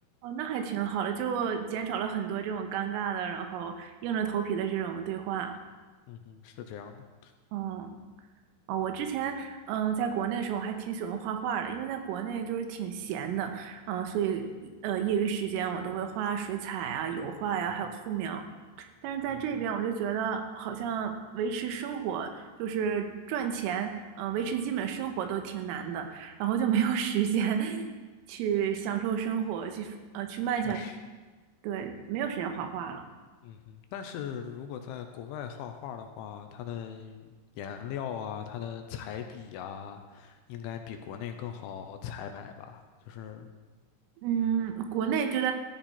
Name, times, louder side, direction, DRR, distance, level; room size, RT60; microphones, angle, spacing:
voice 1, 0.2-5.5 7.5-7.9 8.7-18.4 18.8-27.9 28.3-30.8 31.6-33.0 44.2-45.5, right 8 dB, 85° right, 6 dB, 3.8 m, -31 dB
voice 2, 6.1-7.3 19.3-19.4 30.6-31.0 33.4-43.5, left 8 dB, 80° left, 6 dB, 3.0 m, -40 dB
14.5 x 13.0 x 4.3 m, 1.3 s
omnidirectional pair, 5.9 m